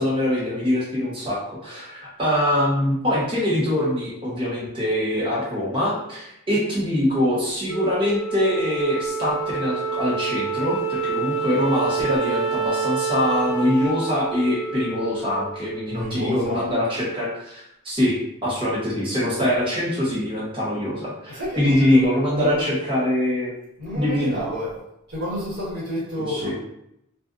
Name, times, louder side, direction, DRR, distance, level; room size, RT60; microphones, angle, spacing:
voice 1, 0.0-23.5 23.9-24.4 26.3-26.5, left 1 dB, 25° right, -6 dB, 0.8 m, -23 dB
Wind instrument woodwind instrument, 7.7-16.2, right 5 dB, 80° left, 0.7 m, -28 dB
voice 2, 15.9-16.7 21.3-22.8 23.8-24.8 25.1-26.5, left 1 dB, 50° right, -9 dB, 1.3 m, -30 dB
2.5 x 2.4 x 2.4 m, 0.80 s
head